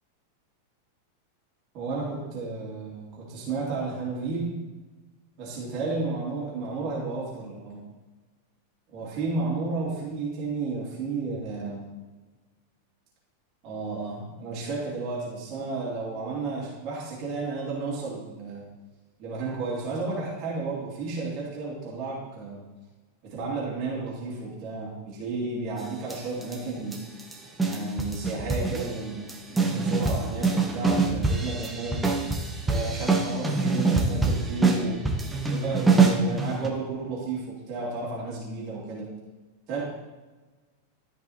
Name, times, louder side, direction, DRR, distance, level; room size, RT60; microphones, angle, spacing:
voice 1, 1.7-4.6 5.4-7.8 8.9-11.9 13.6-18.6 19.2-22.6 23.2-27.0 27.6-29.2 29.5-32.0 32.7-35.0 35.5-39.1 39.7-39.8, right 3 dB, 40° right, -6 dB, 2.7 m, -32 dB
sound 1, 26.1-26.6 26.9-27.3 27.6-29.0 29.3-36.7, right 4 dB, 10° right, 1.0 m, -24 dB
13.0 x 5.3 x 3.0 m, 1.2 s
figure-of-eight pair, 90°, 0 cm